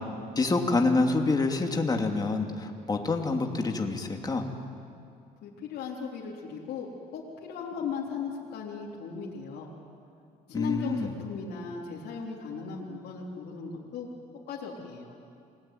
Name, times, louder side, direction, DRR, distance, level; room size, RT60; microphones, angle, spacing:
voice 1, 0.4-4.5 10.5-11.1, left 3 dB, 25° left, 3 dB, 2.8 m, -27 dB
voice 2, 5.4-9.7 10.5-14.1 14.5-15.1, left 6 dB, 70° left, -4 dB, 3.9 m, -37 dB
28.5 x 20.5 x 9.3 m, 2.4 s
cardioid pair, 110°, 17 cm